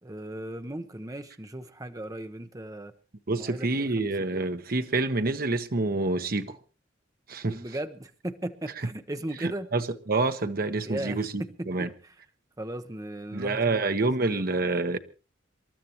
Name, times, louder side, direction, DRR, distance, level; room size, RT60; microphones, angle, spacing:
voice 1, 0.0-2.9 3.4-4.5 7.4-9.7 10.8-12.1 12.6-14.5, right 1 dB, 20° right, 0.9 m, -37 dB
voice 2, 3.3-6.6 7.3-7.6 9.7-9.8 10.1-11.3 11.7-11.9 13.3-15.0, right 3 dB, 50° right, 1.0 m, -27 dB
27.5 x 12.5 x 3.0 m
head